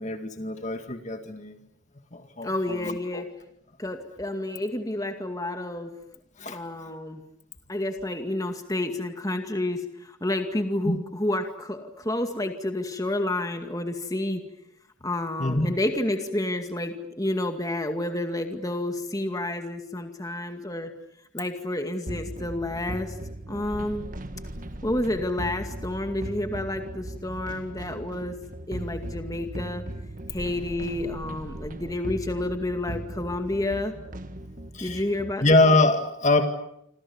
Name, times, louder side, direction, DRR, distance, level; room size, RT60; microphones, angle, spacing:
voice 1, 0.0-1.6 2.1-2.5 2.8-3.2 6.4-6.6 10.9-11.0 15.4-15.7 34.7-35.0 35.4-36.4, left 2 dB, 35° left, 6 dB, 2.1 m, -23 dB
voice 2, 2.4-3.3 3.8-6.0 6.5-7.2 7.7-14.4 15.0-20.9 21.3-23.2 23.5-24.0 24.8-28.4 28.7-29.8 30.3-33.9 34.8-35.5, left 1 dB, 15° left, 5 dB, 2.2 m, -30 dB
sound 1, 22.1-35.4, right 1 dB, 40° right, 1.4 m, -38 dB
27.5 x 27.0 x 7.1 m, 0.76 s
head